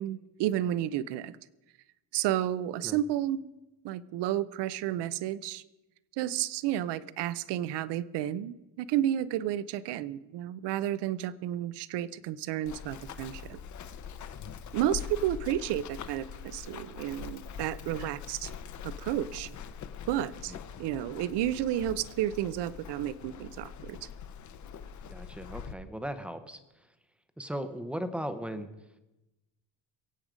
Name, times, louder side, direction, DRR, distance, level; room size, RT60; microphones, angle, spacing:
voice 1, 0.0-1.4 2.1-3.5 3.8-5.6 6.2-13.6 14.7-18.5 18.8-19.5 20.1-24.1, right 12 dB, 65° right, 17 dB, 0.7 m, -31 dB
Run, 12.7-25.7, left 7 dB, 40° left, 0.8 m, -43 dB
voice 2, 25.1-26.6 27.4-28.7, equal, 5° right, 10 dB, 0.7 m, -37 dB
23.0 x 8.8 x 5.1 m, 0.99 s
cardioid pair, 175°, 44 cm